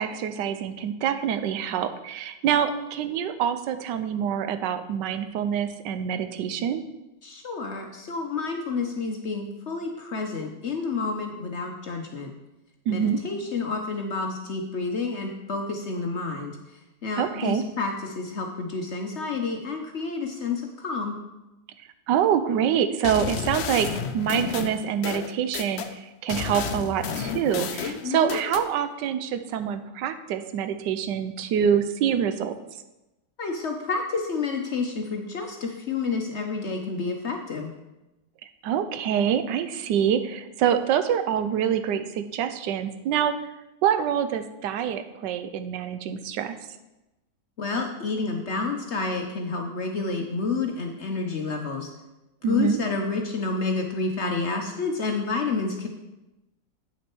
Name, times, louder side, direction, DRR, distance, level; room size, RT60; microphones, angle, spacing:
voice 1, 0.0-6.8 12.9-13.2 17.2-17.6 22.1-23.9 24.1-32.5 38.6-43.3 43.8-46.6 52.4-52.8, right 8 dB, 80° right, 10 dB, 1.3 m, -26 dB
voice 2, 7.2-12.3 12.9-16.6 17.0-21.2 28.0-28.3 33.4-37.7 47.6-51.9 52.5-55.9, left 4 dB, 55° left, 3 dB, 0.8 m, -29 dB
sound 1, 23.0-25.9 26.3-28.7, left 6 dB, 85° left, 0.5 m, -31 dB
8.2 x 6.2 x 4.5 m, 0.99 s
omnidirectional pair, 1.9 m